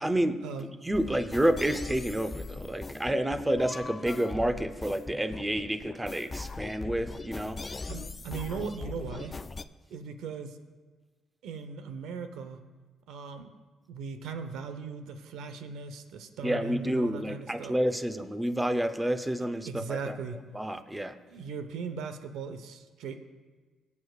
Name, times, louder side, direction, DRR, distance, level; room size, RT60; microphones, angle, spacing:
voice 1, 0.0-7.6 16.4-20.1 20.5-21.2, right 1 dB, 10° right, 9 dB, 0.7 m, -29 dB
sound 1, 0.9-9.6, left 3 dB, 25° left, 0.3 m, -40 dB
voice 2, 7.9-9.3 9.9-10.6 11.4-12.6 13.1-13.5 13.9-17.7 19.6-20.4 21.3-23.2, right 5 dB, 85° right, 8 dB, 0.9 m, -38 dB
22.5 x 8.4 x 2.4 m, 1.4 s
cardioid pair, 90°, 0 cm